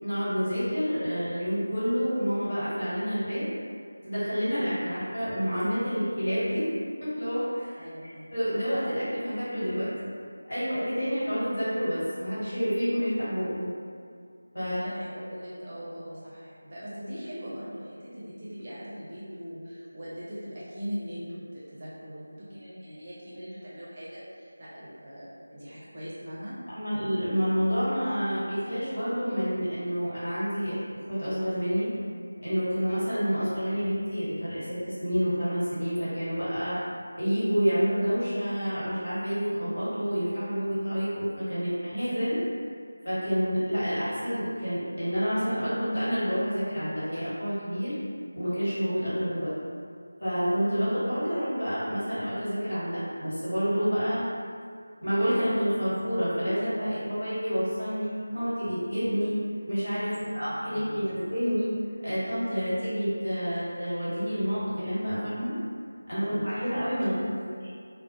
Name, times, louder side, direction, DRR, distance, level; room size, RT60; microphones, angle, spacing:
voice 1, 0.0-3.5 4.0-6.6 7.0-7.8 8.3-10.1 10.4-13.7 14.5-14.8 26.7-30.8 31.1-31.9 32.4-36.8 37.1-42.4 43.0-48.0 48.3-49.5 50.2-54.3 55.0-59.3 59.7-61.7 62.0-65.5 66.1-67.1, equal, 65° left, -11 dB, 1.4 m, -28 dB
voice 2, 7.8-8.2 14.6-26.5 60.1-61.0 66.2-66.4 67.1-67.6, equal, 30° right, -9 dB, 0.5 m, -40 dB
2.4 x 2.0 x 2.8 m, 2.2 s
figure-of-eight pair, 170°, 0 cm